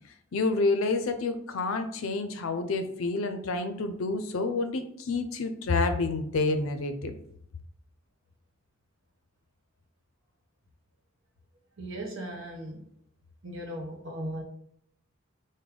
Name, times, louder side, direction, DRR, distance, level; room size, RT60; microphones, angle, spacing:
voice 1, 0.3-7.1, left 3 dB, 80° left, 8 dB, 0.5 m, -28 dB
voice 2, 11.8-12.9 13.4-14.4, right 1 dB, 65° right, 1 dB, 1.1 m, -37 dB
5.0 x 2.1 x 3.7 m, 0.70 s
head